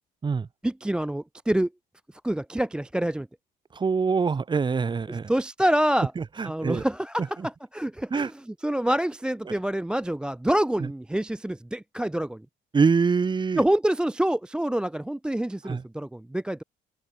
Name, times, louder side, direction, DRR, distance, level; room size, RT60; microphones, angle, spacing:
voice 1, 0.6-1.7 2.2-3.3 5.1-6.1 6.4-8.3 8.6-12.4 13.6-16.6, right 1 dB, 5° right, 0.4 m, -26 dB
voice 2, 3.7-5.3 6.2-6.8 7.2-7.5 8.1-8.3 9.5-9.6 10.8-10.9 12.7-13.6 15.6-15.8, right 5 dB, 25° right, 2.4 m, -25 dB
cardioid pair, 110°, 17 cm